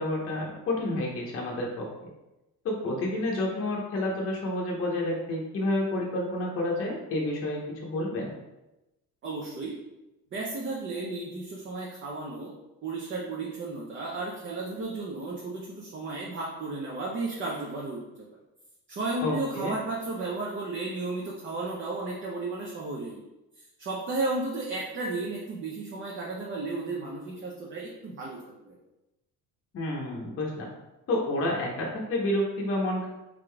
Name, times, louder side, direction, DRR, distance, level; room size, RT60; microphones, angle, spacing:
voice 1, 0.0-1.9 2.6-8.3 19.2-19.7 29.7-30.7 31.1-33.1, left 1 dB, 35° left, -2 dB, 0.8 m, -29 dB
voice 2, 9.2-9.7 10.3-12.5 12.8-18.3 18.9-23.2 23.8-28.8, right 3 dB, 30° right, -3 dB, 0.6 m, -34 dB
3.7 x 3.6 x 3.3 m, 0.98 s
cardioid pair, 145°, 38 cm